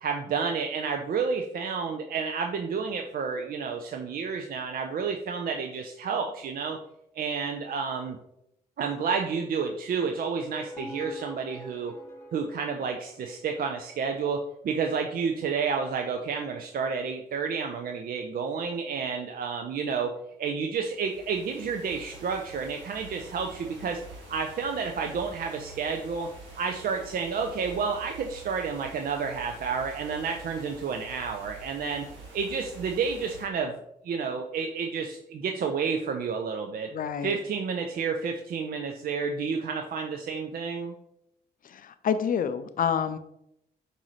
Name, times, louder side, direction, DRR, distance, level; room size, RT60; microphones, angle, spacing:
voice 1, 0.0-6.8 7.1-8.2 8.8-11.9 12.3-20.1 20.4-24.0 24.3-26.3 26.6-32.1 32.3-33.8 34.0-36.9 37.2-40.9, right 5 dB, 50° right, 4 dB, 0.5 m, -30 dB
sound 1, 10.3-13.5, equal, 15° left, 1.1 m, -44 dB
sound 2, 20.8-33.4, right 3 dB, 75° right, 1.2 m, -47 dB
voice 2, 36.9-37.4 41.6-43.2, left 7 dB, 45° left, 11 dB, 0.5 m, -28 dB
5.4 x 2.6 x 3.1 m, 0.79 s
hypercardioid pair, 50°, 19 cm